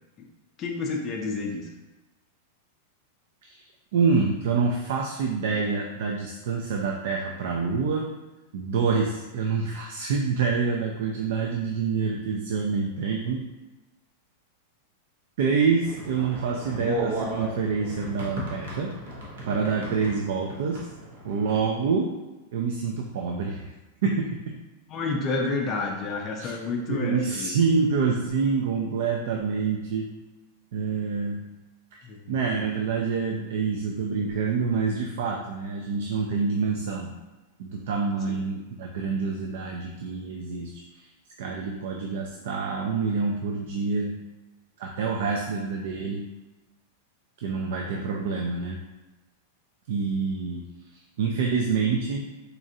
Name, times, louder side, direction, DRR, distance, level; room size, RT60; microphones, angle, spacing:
voice 1, 0.6-1.7 24.9-27.6 32.0-32.3, left 3 dB, 20° left, 0 dB, 0.3 m, -29 dB
voice 2, 3.9-8.1 8.5-13.5 15.4-18.9 19.4-20.9 21.2-22.1 22.5-23.7 24.0-24.6 26.4-26.5 26.9-30.1 30.7-31.4 32.3-37.1 37.6-41.1 41.4-44.2 44.8-46.2 47.4-48.8 49.9-50.6 50.9-52.3, right 5 dB, 55° right, 0 dB, 0.3 m, -27 dB
sound 1, 15.8-21.6, right 1 dB, 75° right, 0.9 m, -35 dB
4.0 x 2.5 x 2.6 m, 1.1 s
supercardioid pair, 175°, 0 cm